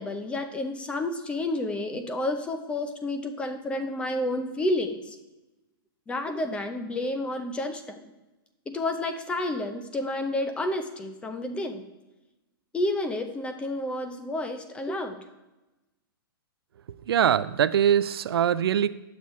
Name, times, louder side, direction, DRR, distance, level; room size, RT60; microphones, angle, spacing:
voice 1, 0.0-5.2 6.1-8.1 8.7-11.8 12.7-15.2, left 1 dB, 10° left, 7 dB, 0.6 m, -30 dB
voice 2, 17.1-18.9, right 9 dB, 85° right, 16 dB, 0.4 m, -22 dB
10.5 x 7.1 x 3.1 m, 1.0 s
hypercardioid pair, 150°, 12 cm